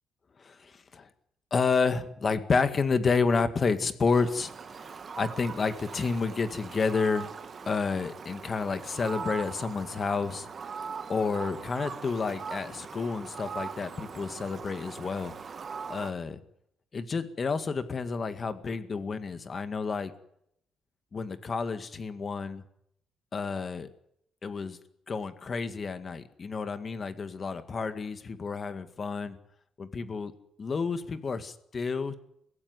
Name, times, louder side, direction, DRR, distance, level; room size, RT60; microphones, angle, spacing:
voice 1, 0.4-1.1 1.5-7.3 7.7-10.5 11.1-15.3 15.9-16.4 16.9-20.1 21.1-22.6 23.3-23.9 24.4-24.8 25.1-29.4 29.8-30.3 30.6-32.1, left 4 dB, 40° left, 10 dB, 2.0 m, -30 dB
Fowl, 4.1-16.1, right 5 dB, 45° right, 1.7 m, -41 dB
22.5 x 16.0 x 9.7 m, 0.76 s
cardioid pair, 90°, 0 cm